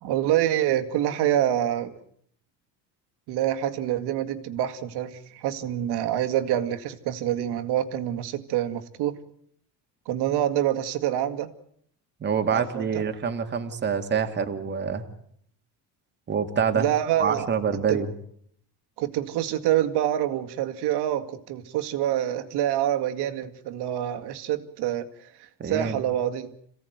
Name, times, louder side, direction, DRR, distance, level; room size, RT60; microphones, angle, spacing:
voice 1, 0.0-2.0 3.3-9.2 10.1-11.5 12.5-12.9 16.7-17.5 17.9-18.0 19.0-25.1 25.6-26.5, right 11 dB, 65° right, 8 dB, 2.2 m, -26 dB
voice 2, 12.2-15.0 16.3-16.9 17.2-18.1 25.6-26.0, right 6 dB, 25° right, 6 dB, 2.1 m, -26 dB
27.0 x 16.5 x 9.5 m, 0.69 s
cardioid pair, 165°, 42 cm